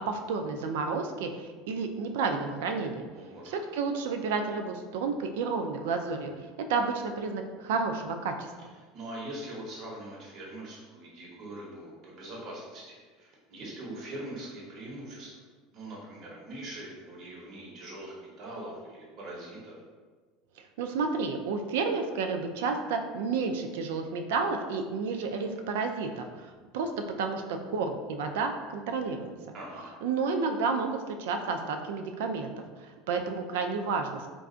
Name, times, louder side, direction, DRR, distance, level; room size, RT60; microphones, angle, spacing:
voice 1, 0.1-3.0 3.4-6.3 6.7-8.5 20.6-26.9 27.2-29.3 30.0-32.5 32.8-34.3, right 4 dB, 85° right, 5 dB, 0.3 m, -31 dB
voice 2, 8.9-15.4 15.7-19.7 29.5-30.0, right 1 dB, 50° right, -4 dB, 0.9 m, -42 dB
3.8 x 2.3 x 2.4 m, 1.4 s
supercardioid pair, 115°, 0 cm